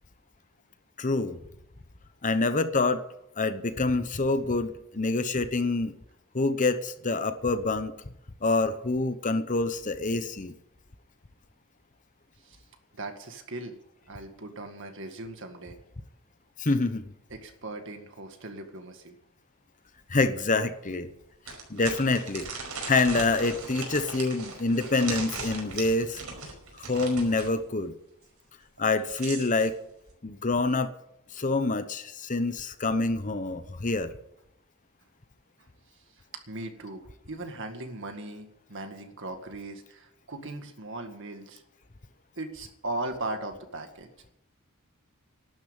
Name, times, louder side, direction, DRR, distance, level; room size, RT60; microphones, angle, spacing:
voice 1, 1.0-1.4 2.2-3.0 3.4-6.0 6.3-7.9 8.4-10.5 16.6-17.1 20.1-21.1 21.7-22.5 22.9-26.2 26.9-27.9 28.8-29.7 30.2-30.9 31.3-34.1, left 3 dB, 35° left, 11 dB, 0.9 m, -26 dB
voice 2, 12.9-13.8 14.1-15.8 17.3-19.2 35.6-35.7 36.0-36.1 36.3-41.6 42.4-44.1, right 2 dB, 55° right, 6 dB, 1.9 m, -38 dB
sound 1, 20.0-20.1 20.5-20.6 21.5-27.5 28.8-29.7, right 4 dB, 85° right, 5.2 m, -38 dB
12.0 x 9.9 x 8.8 m, 0.82 s
head